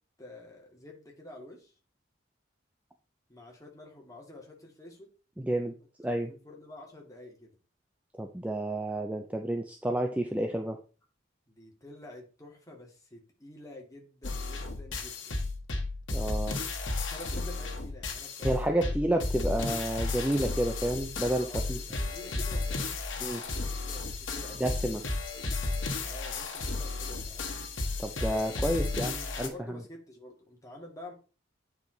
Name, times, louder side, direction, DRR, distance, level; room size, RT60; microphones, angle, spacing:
voice 1, 0.2-1.7 3.3-5.1 6.2-7.6 11.5-15.4 17.0-18.9 21.4-25.0 26.0-27.5 28.6-31.1, left 1 dB, 15° left, 0 dB, 2.2 m, -49 dB
voice 2, 5.4-6.3 8.2-10.8 16.1-16.6 18.4-21.8 23.2-23.4 24.6-25.0 28.0-29.8, right 1 dB, 5° right, 4 dB, 0.6 m, -30 dB
sound 1, 14.2-29.5, left 3 dB, 70° left, 1.5 m, -33 dB
8.8 x 4.9 x 3.9 m, 0.35 s
head